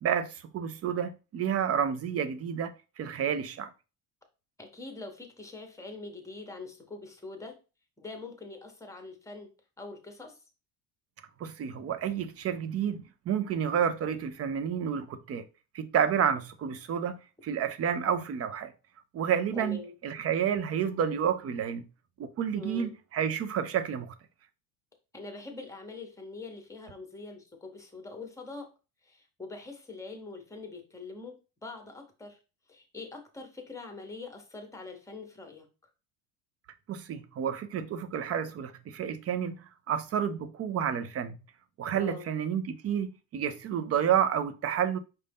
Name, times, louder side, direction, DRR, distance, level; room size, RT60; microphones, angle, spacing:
voice 1, 0.0-3.7 11.4-15.4 15.7-18.7 19.1-19.8 20.0-21.8 22.2-24.1 36.9-41.4 41.8-45.0, right 8 dB, 35° right, 0.5 m, -30 dB
voice 2, 4.6-7.6 8.0-9.5 9.8-10.4 19.5-19.9 22.5-22.9 25.1-28.7 29.0-32.4 32.7-35.7 41.9-42.3, left 3 dB, 5° left, 0.9 m, -43 dB
5.5 x 2.6 x 3.5 m
cardioid pair, 135°, 44 cm